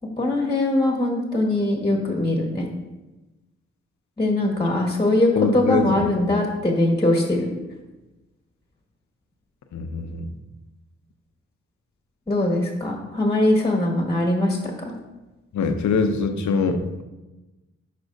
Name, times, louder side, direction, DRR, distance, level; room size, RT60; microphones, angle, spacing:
voice 1, 0.2-2.6 4.2-7.5 12.3-14.6, left 1 dB, 15° left, -1 dB, 1.6 m, -21 dB
voice 2, 5.4-5.9 9.7-10.2 15.5-17.0, left 5 dB, 70° left, 7 dB, 0.8 m, -23 dB
10.5 x 4.3 x 2.7 m, 1.1 s
supercardioid pair, 40°, 30 cm